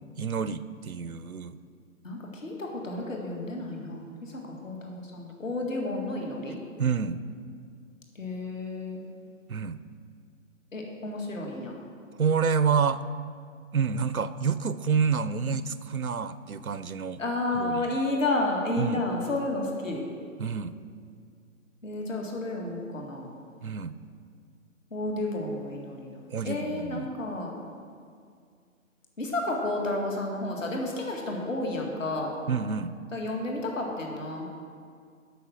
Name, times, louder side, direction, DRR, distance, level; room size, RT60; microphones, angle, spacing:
voice 1, 0.2-1.6 6.8-7.2 9.5-9.8 12.2-13.0 13.7-17.2 17.5-18.0 18.8-19.0 20.4-20.7 23.6-23.9 26.3-27.1 32.5-32.9, right 6 dB, 90° right, 14 dB, 0.6 m, -28 dB
voice 2, 2.0-6.6 8.2-9.0 10.7-11.7 17.2-20.0 21.8-23.3 24.9-27.5 29.2-32.3 33.1-34.5, left 2 dB, 65° left, 0 dB, 2.1 m, -31 dB
8.4 x 6.1 x 7.4 m, 2.2 s
figure-of-eight pair, 140°, 42 cm